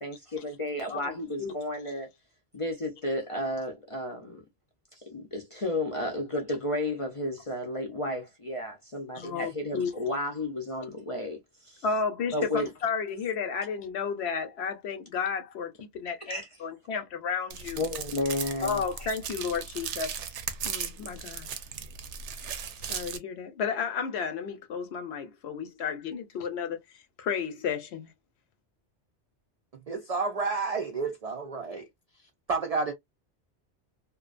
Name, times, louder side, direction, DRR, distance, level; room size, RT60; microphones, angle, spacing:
voice 1, 0.0-2.1 2.5-4.4 5.0-11.8 12.3-12.7 16.2-16.6 17.8-19.1, left 1 dB, 40° left, 0.5 m, -33 dB
voice 2, 0.9-1.5 9.2-9.9 11.8-12.5 12.8-17.8 18.6-20.1 20.6-21.5 22.9-26.8 27.2-28.1, left 6 dB, 70° left, 0.8 m, -32 dB
sound 1, 17.5-23.2, right 7 dB, 80° right, 0.9 m, -37 dB
voice 3, 29.9-31.8 32.5-32.9, right 4 dB, 60° right, 0.4 m, -30 dB
2.6 x 2.1 x 2.4 m
omnidirectional pair, 1.2 m